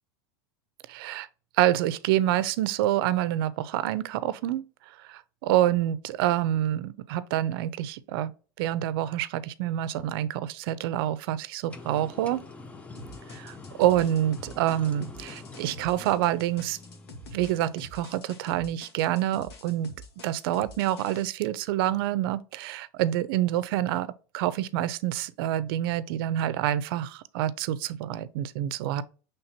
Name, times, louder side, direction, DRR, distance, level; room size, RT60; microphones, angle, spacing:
voice 1, 0.9-1.3 1.6-4.6 5.0-8.3 8.6-12.4 13.3-16.8 17.3-19.9 20.2-24.1 24.3-29.0, right 13 dB, 70° right, 0.5 m, -27 dB
sound 1, 11.7-18.0, left 3 dB, 10° left, 0.4 m, -46 dB
sound 2, 12.9-21.2, left 1 dB, 80° left, 1.2 m, -46 dB
5.7 x 3.3 x 2.7 m
supercardioid pair, 145°, 13 cm